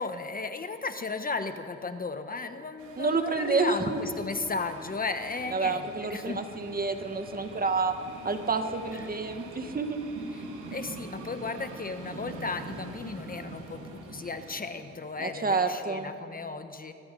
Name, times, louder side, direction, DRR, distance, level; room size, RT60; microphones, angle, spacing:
voice 1, 0.0-6.4 8.9-9.1 10.3-10.4 10.7-16.9, left 4 dB, 30° left, 8 dB, 1.2 m, -35 dB
sound 1, 2.8-15.2, right 3 dB, 90° right, 3.3 m, -45 dB
voice 2, 3.0-4.0 5.5-7.9 8.2-10.0 15.2-16.1, right 4 dB, 30° right, 7 dB, 1.8 m, -29 dB
24.5 x 19.5 x 5.4 m, 2.5 s
cardioid pair, 90°, 30 cm